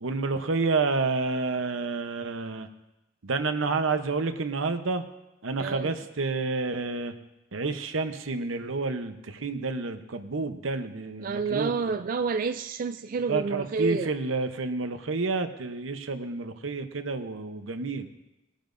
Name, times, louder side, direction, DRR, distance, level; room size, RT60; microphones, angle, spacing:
voice 1, 0.0-2.7 3.2-5.0 5.4-7.1 7.5-11.9 13.3-18.1, right 3 dB, 90° right, 8 dB, 0.9 m, -29 dB
voice 2, 5.6-5.9 11.2-14.1, right 4 dB, 45° right, 8 dB, 0.3 m, -29 dB
20.5 x 10.0 x 2.6 m, 0.95 s
head